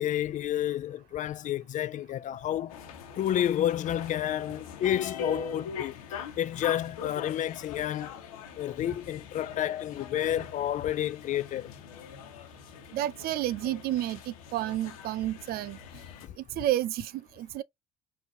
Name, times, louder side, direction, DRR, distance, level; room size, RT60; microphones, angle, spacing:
voice 1, 0.0-2.7 3.2-6.0 6.4-8.2 8.6-11.7, left 11 dB, 45° left, 0.4 m, -30 dB
sound 1, 2.7-16.3, left 6 dB, 90° left, 1.1 m, -42 dB
voice 2, 12.9-15.8 16.4-17.6, right 14 dB, 60° right, 0.5 m, -31 dB
5.1 x 2.8 x 2.6 m
hypercardioid pair, 70°, 18 cm